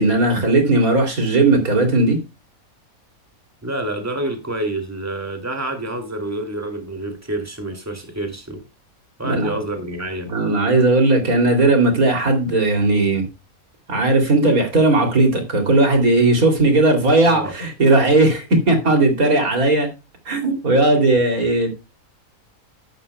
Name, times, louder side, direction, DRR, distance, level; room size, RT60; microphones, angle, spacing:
voice 1, 0.0-2.2 9.2-9.5 10.3-13.2 13.9-19.9 20.2-21.7, right 2 dB, 80° right, 3.4 m, -17 dB
voice 2, 3.6-8.6 9.2-10.3 17.3-17.5, right 1 dB, 10° right, 2.5 m, -28 dB
11.5 x 11.5 x 2.2 m
omnidirectional pair, 1.5 m